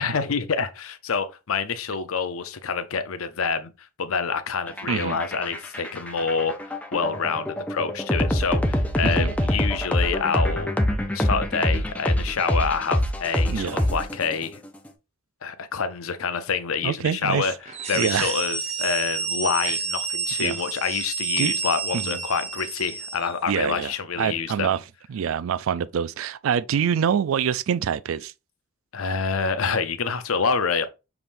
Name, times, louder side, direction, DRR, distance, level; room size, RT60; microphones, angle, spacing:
voice 1, 0.0-10.7 11.1-14.6 15.4-17.5 17.9-24.8 28.9-30.9, left 5 dB, 85° left, 0.6 m, -27 dB
sound 1, 4.7-14.4, equal, 5° left, 0.5 m, -25 dB
voice 2, 4.9-5.2 9.0-9.3 13.5-13.8 16.8-17.5 17.9-18.3 19.7-19.8 20.4-20.6 21.4-21.5 21.9-22.2 23.5-23.9 24.2-24.8 25.1-28.3, right 8 dB, 75° right, 0.3 m, -25 dB
sound 2, 17.7-23.4, right 5 dB, 30° right, 0.8 m, -29 dB
5.9 x 3.5 x 2.5 m
head